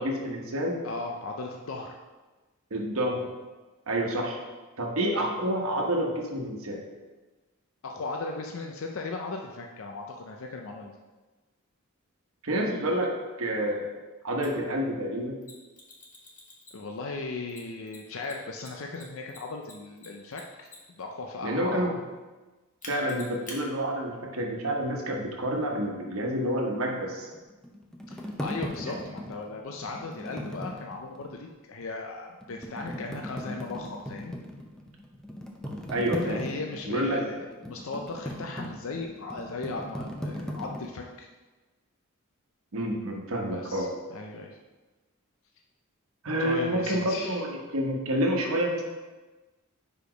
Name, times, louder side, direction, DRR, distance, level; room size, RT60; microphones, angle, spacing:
voice 1, 0.0-0.8 2.7-3.3 3.9-4.4 4.8-6.8 12.4-13.1 13.4-13.9 14.2-15.4 21.4-22.0 22.9-27.3 28.8-29.0 35.9-36.4 36.9-37.2 42.7-43.9 46.2-48.8, equal, 75° right, 0 dB, 1.1 m, -28 dB
voice 2, 0.8-2.0 5.1-5.3 7.8-10.9 16.7-20.7 21.0-21.9 28.1-34.3 36.2-41.3 43.5-44.6 46.4-47.4, left 3 dB, 65° left, 2 dB, 0.5 m, -37 dB
Mechanisms, 14.4-14.5 15.4-17.0 17.5-21.0 22.8-23.6, left 3 dB, 35° left, 1.2 m, -46 dB
sound 1, 27.3-31.3 31.8-31.9 32.4-40.9, equal, 5° left, 0.6 m, -38 dB
5.0 x 4.9 x 5.1 m, 1.2 s
head